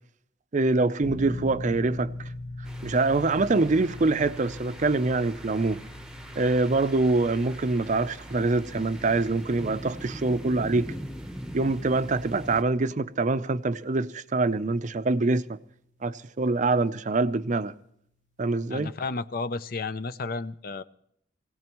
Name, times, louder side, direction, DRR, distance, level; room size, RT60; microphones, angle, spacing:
voice 1, 0.5-2.3 2.8-5.8 6.4-10.9 11.5-15.6 16.0-17.7 18.4-18.9, right 3 dB, 40° right, 0.5 m, -25 dB
sound 1, 1.0-17.8, left 1 dB, 85° left, 1.4 m, -43 dB
sound 2, 2.6-12.6, equal, 5° right, 0.9 m, -41 dB
voice 2, 18.7-20.8, left 3 dB, 50° left, 0.5 m, -32 dB
22.5 x 17.0 x 3.0 m
head